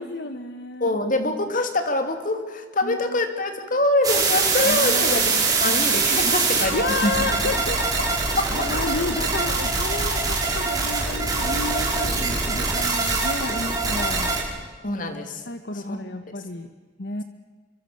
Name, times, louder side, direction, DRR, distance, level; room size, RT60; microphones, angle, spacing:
voice 1, 0.0-0.9 2.8-3.2 4.6-5.5 6.7-7.8 8.5-14.3 15.5-16.7 17.0-17.2, left 2 dB, 60° left, 8 dB, 1.5 m, -31 dB
voice 2, 0.8-5.2 5.6-6.8 7.0-7.1 8.4-8.5 14.8-15.4 15.7-16.0, left 2 dB, 45° left, 6 dB, 3.1 m, -24 dB
sound 1, 4.0-14.4, right 3 dB, 20° right, 5.3 m, -23 dB
27.0 x 24.5 x 7.1 m, 1.3 s
head